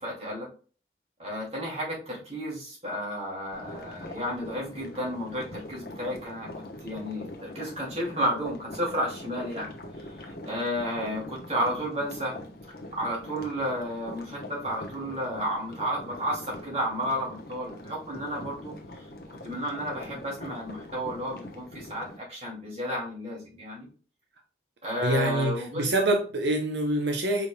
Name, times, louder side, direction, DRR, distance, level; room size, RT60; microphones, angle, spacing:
voice 1, 0.0-0.5 1.2-9.7 10.0-12.4 13.0-23.9 24.8-25.8, equal, 35° right, -4 dB, 2.5 m, -32 dB
sound 1, 3.5-22.2, left 1 dB, 60° left, 1.0 m, -43 dB
voice 2, 25.0-27.5, right 1 dB, 80° right, 3 dB, 0.7 m, -26 dB
4.9 x 4.9 x 2.2 m, 0.39 s
head